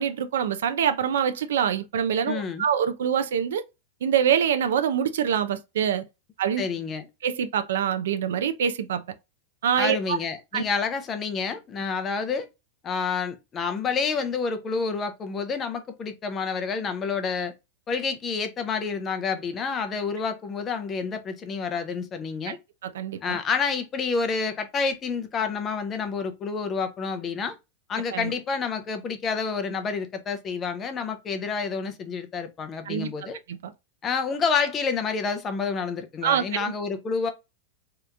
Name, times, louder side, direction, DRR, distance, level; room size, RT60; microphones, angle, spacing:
voice 1, 0.0-3.6 4.0-6.0 6.4-6.6 7.2-9.0 9.6-10.2 10.5-10.6 22.5-22.6 22.8-23.4 28.1-28.3 32.9-33.1 33.5-33.6 36.2-36.7, right 8 dB, 85° right, 0.4 m, -25 dB
voice 2, 2.3-2.7 6.6-7.1 9.8-12.5 12.8-17.5 17.9-22.6 23.2-27.6 27.9-33.4 34.0-37.3, left 5 dB, 15° left, 0.4 m, -29 dB
2.8 x 2.5 x 3.3 m
supercardioid pair, 180°, 0 cm